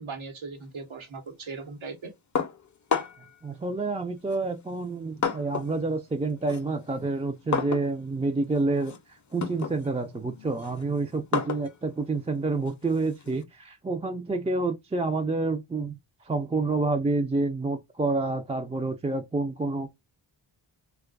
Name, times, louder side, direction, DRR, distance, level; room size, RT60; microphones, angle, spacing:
voice 1, 0.0-2.1, right 4 dB, 70° right, 1.0 m, -39 dB
sound 1, 2.4-3.4 4.3-5.8 6.1-13.4, left 6 dB, 40° left, 0.5 m, -33 dB
voice 2, 3.4-8.9 9.3-16.0 16.3-19.9, right 3 dB, 15° right, 0.4 m, -28 dB
2.5 x 2.3 x 2.2 m
cardioid pair, 50°, 49 cm